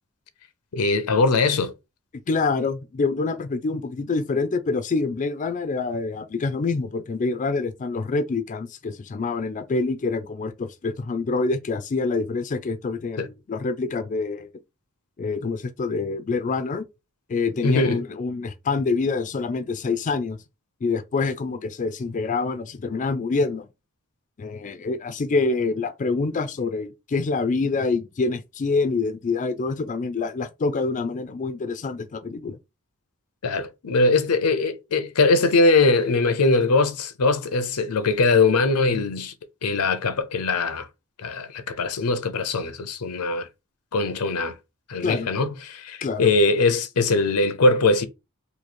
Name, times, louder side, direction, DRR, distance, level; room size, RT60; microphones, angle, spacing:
voice 1, 0.7-1.7 13.2-13.3 17.6-18.0 33.4-39.3 39.6-40.9 41.2-43.5 43.9-44.6 44.9-48.1, left 3 dB, 90° left, 0.6 m, -21 dB
voice 2, 2.3-14.5 15.2-16.9 17.3-20.4 20.8-23.7 24.4-32.6 45.0-45.3 46.0-46.3, left 4 dB, 35° left, 0.4 m, -26 dB
3.0 x 2.7 x 4.2 m
head